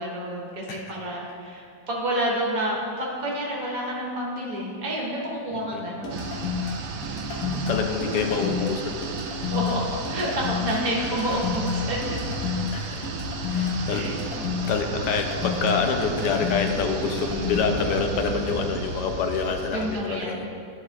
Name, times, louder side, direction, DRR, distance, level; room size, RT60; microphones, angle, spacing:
voice 1, 0.0-6.3 9.5-9.8 10.1-12.0 13.9-14.4 19.7-20.4, equal, 60° right, -3 dB, 1.6 m, -29 dB
sound 1, 6.0-17.6, left 5 dB, 70° left, 1.5 m, -30 dB
sound 2, 6.1-20.0, right 3 dB, 85° right, 1.2 m, -33 dB
voice 2, 7.5-9.0 12.7-13.0 13.5-14.0 14.7-20.4, left 5 dB, 85° left, 4 dB, 1.3 m, -26 dB
11.5 x 5.4 x 2.4 m, 2.5 s
omnidirectional pair, 1.8 m